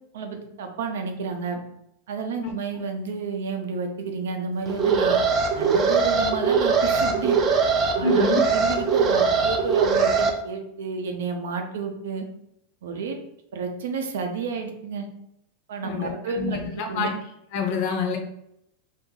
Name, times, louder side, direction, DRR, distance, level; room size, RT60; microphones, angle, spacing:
voice 1, 0.1-1.6 2.1-5.2 5.5-7.4 8.0-12.2 12.8-13.2 13.5-15.1 15.7-17.1, right 4 dB, 85° right, 5 dB, 0.7 m, -30 dB
Alarm, 4.7-10.3, right 5 dB, 20° right, 0.4 m, -21 dB
voice 2, 8.0-8.4 15.8-17.1 17.5-18.2, left 5 dB, 40° left, 3 dB, 0.5 m, -27 dB
2.8 x 2.6 x 3.8 m, 0.78 s
supercardioid pair, 175°, 0 cm